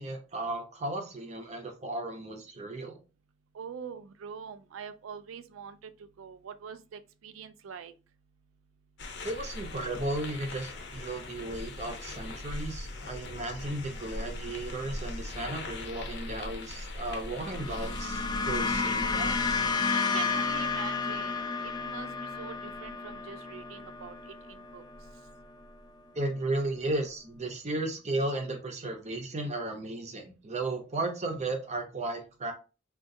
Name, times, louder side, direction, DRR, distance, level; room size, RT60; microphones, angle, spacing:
voice 1, 0.0-3.0 9.2-19.6 26.1-32.5, right 2 dB, 35° right, 0.7 m, -35 dB
voice 2, 3.5-5.9 6.2-7.9 19.9-24.8, right 7 dB, 85° right, 0.4 m, -44 dB
sound 1, 9.0-19.8, left 2 dB, 60° left, 0.7 m, -40 dB
sound 2, 17.4-25.9, left 4 dB, 20° left, 0.4 m, -32 dB
3.7 x 2.5 x 2.6 m
head